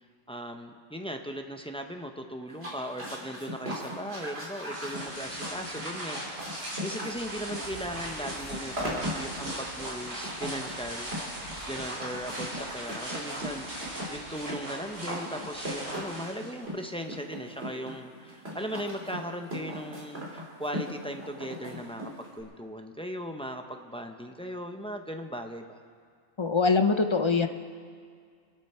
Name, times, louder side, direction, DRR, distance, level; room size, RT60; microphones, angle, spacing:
voice 1, 0.3-11.1 11.7-25.8, equal, 5° left, 4 dB, 0.7 m, -38 dB
sound 1, 2.5-22.4, equal, 50° right, 3.5 m, -39 dB
sound 2, 4.7-16.6, right 1 dB, 70° right, 4.8 m, -39 dB
voice 2, 26.4-27.5, left 4 dB, 45° left, 7 dB, 0.4 m, -23 dB
26.0 x 11.5 x 4.4 m, 2.1 s
omnidirectional pair, 1.4 m